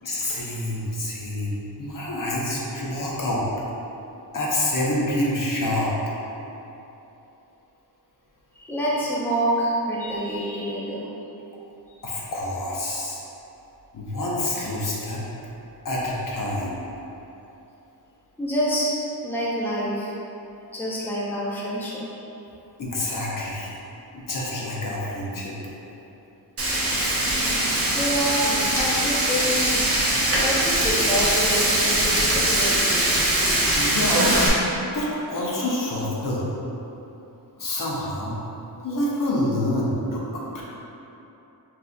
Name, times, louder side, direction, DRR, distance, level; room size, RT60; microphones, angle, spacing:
voice 1, 0.0-3.4 4.3-5.9 12.0-13.2 13.9-15.2 15.8-16.7 22.8-23.7 24.1-25.5 33.7-34.4 34.9-36.5 37.6-38.4 38.8-40.6, left 1 dB, 55° left, -5 dB, 0.7 m, -27 dB
voice 2, 8.6-11.1 18.4-18.9 19.2-20.1 20.7-22.1 27.9-28.4 28.8-29.8 30.4-32.8, equal, 5° left, -7 dB, 0.6 m, -27 dB
Frying (food), 26.6-34.5, right 1 dB, 35° right, 0.7 m, -22 dB
5.7 x 2.7 x 2.2 m, 3.0 s
wide cardioid pair, 110°, 40 cm